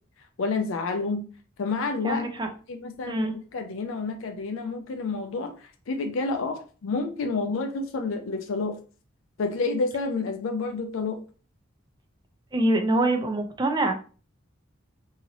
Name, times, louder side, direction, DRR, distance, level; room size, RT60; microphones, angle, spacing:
voice 1, 0.4-1.2 1.6-2.3 2.7-5.5 5.9-8.8 9.4-11.2, left 3 dB, 75° left, 6 dB, 0.4 m, -29 dB
voice 2, 2.0-2.5 3.1-3.4 12.5-13.9, right 1 dB, 20° right, 5 dB, 0.4 m, -24 dB
2.9 x 2.8 x 2.7 m, 0.38 s
head